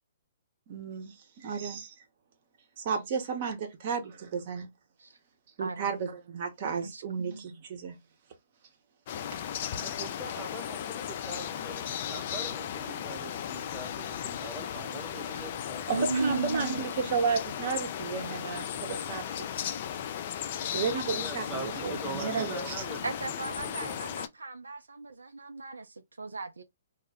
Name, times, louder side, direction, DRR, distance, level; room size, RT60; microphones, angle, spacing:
voice 1, 0.7-2.0 2.8-4.7 5.6-8.0 15.9-19.5 20.7-22.9, right 6 dB, 45° right, 0.8 m, -33 dB
voice 2, 5.6-6.1 6.8-7.6 15.9-16.9 23.0-26.6, right 3 dB, 80° right, 0.4 m, -36 dB
sound 1, 9.1-24.3, left 9 dB, 45° left, 0.3 m, -36 dB
voice 3, 9.8-16.4 20.6-23.1, right 2 dB, 10° right, 0.9 m, -43 dB
2.2 x 2.0 x 3.3 m
figure-of-eight pair, 125°, 0 cm